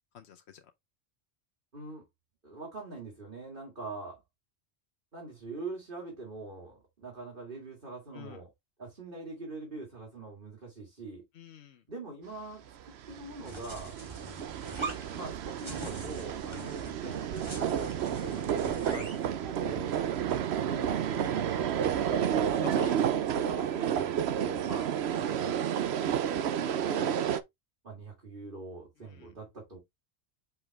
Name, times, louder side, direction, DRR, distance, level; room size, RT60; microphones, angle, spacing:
voice 1, 0.1-0.6 8.1-8.4 11.4-11.8 18.9-19.1 22.2-23.0 29.1-29.3, left 8 dB, 75° left, 1.0 m, -45 dB
voice 2, 1.7-2.0 2.4-4.2 5.1-8.5 8.8-11.2 11.9-14.0 15.1-19.1 19.4-20.0 20.6-22.3 23.0-25.6 26.4-27.3 27.8-29.8, right 3 dB, 50° right, 2.7 m, -43 dB
sound 1, 13.0-27.4, right 9 dB, 75° right, 0.9 m, -31 dB
sound 2, 13.4-19.3, right 2 dB, 25° right, 1.9 m, -43 dB
5.8 x 5.0 x 3.4 m
omnidirectional pair, 1.1 m